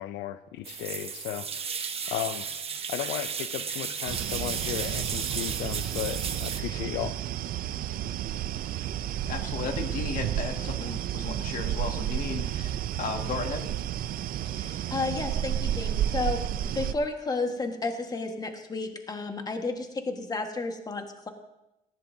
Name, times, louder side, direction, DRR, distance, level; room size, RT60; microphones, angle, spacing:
voice 1, 0.0-1.8 2.1-2.5 2.9-7.2, left 13 dB, 90° left, 11 dB, 0.5 m, -35 dB
sound 1, 0.6-6.6, right 6 dB, 35° right, 1.0 m, -34 dB
sound 2, 4.1-16.9, right 11 dB, 60° right, 0.5 m, -31 dB
voice 2, 9.3-13.7, left 5 dB, 55° left, 4 dB, 1.9 m, -35 dB
voice 3, 14.5-21.3, left 3 dB, 25° left, 5 dB, 1.5 m, -32 dB
18.0 x 15.0 x 2.7 m, 0.92 s
cardioid pair, 110°, 17 cm